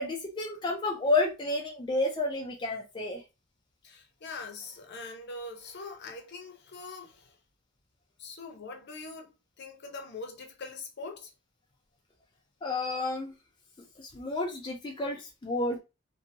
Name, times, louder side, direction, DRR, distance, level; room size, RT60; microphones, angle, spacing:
voice 1, 0.0-3.2 12.6-13.3 14.0-15.8, left 2 dB, 20° left, 0.4 m, -30 dB
voice 2, 3.8-7.4 8.2-11.3, left 3 dB, 55° left, 0.7 m, -43 dB
2.6 x 2.6 x 2.6 m
head